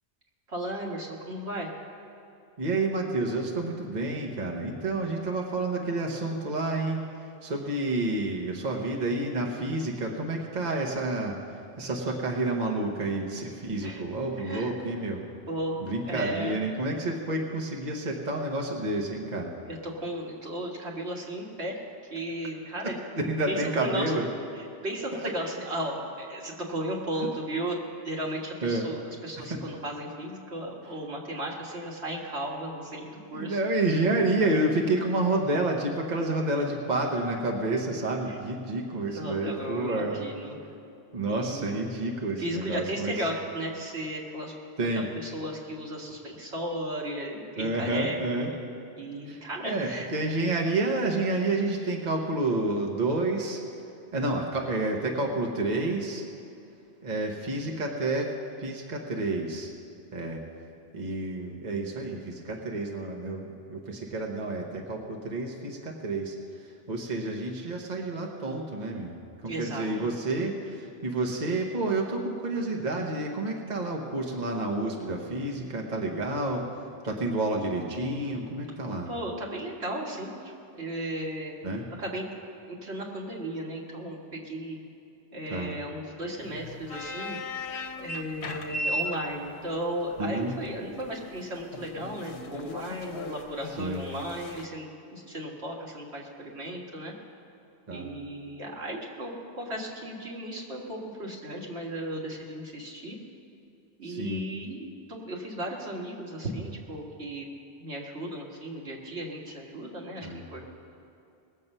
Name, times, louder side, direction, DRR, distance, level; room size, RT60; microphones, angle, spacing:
voice 1, 0.5-1.7 13.8-14.0 14.4-14.8 15.5-16.5 19.7-21.8 22.1-23.0 23.5-24.0 24.6-27.8 28.0-33.6 38.3-38.4 39.0-40.6 41.3-41.8 42.4-44.5 44.9-48.2 49.0-50.1 69.5-70.1 79.1-81.5 82.0-82.3 82.7-84.8 85.3-87.4 88.0-97.1 97.9-103.2 104.0-107.5 107.8-110.6, right 1 dB, 80° right, -2 dB, 2.0 m, -35 dB
voice 2, 2.6-15.2 15.8-19.5 22.8-24.3 25.1-25.3 28.6-28.9 29.4-29.6 33.3-40.3 41.1-43.2 44.8-45.1 47.6-48.5 49.3-53.6 54.1-56.2 57.0-58.3 58.6-59.7 60.1-60.4 60.9-69.1 69.4-76.6 77.0-79.1 81.6-81.9 85.5-85.7 90.2-90.6 93.8-94.1 97.9-98.1 104.0-104.4 110.2-110.4, right 2 dB, 45° right, 1 dB, 1.2 m, -29 dB
sound 1, 86.4-94.7, left 1 dB, 75° left, 1.0 m, -37 dB
20.0 x 7.5 x 5.5 m, 2.6 s
omnidirectional pair, 1.1 m